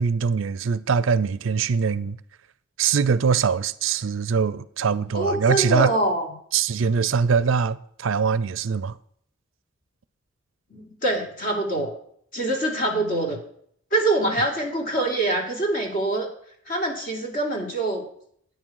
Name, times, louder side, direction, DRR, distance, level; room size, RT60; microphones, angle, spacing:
voice 1, 0.0-2.2 2.8-5.9 6.5-9.0, right 6 dB, 65° right, 0.4 m, -22 dB
voice 2, 5.1-6.2 10.7-11.9 12.3-13.4 13.9-16.3 16.7-18.0, right 1 dB, 40° left, 2.6 m, -24 dB
9.6 x 6.2 x 6.4 m
head